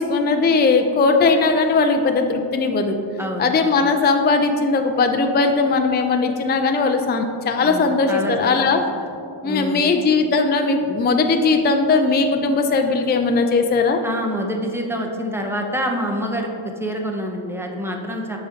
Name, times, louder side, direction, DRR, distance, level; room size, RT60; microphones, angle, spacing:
voice 1, 0.0-3.0 3.4-8.8 9.4-14.0, left 4 dB, 25° left, 5 dB, 0.4 m, -19 dB
voice 2, 3.2-3.5 7.6-9.1 9.4-9.8 14.0-16.5 16.8-18.4, equal, 5° right, 1 dB, 0.7 m, -27 dB
7.7 x 4.9 x 2.8 m, 2.5 s
wide cardioid pair, 70°, 48 cm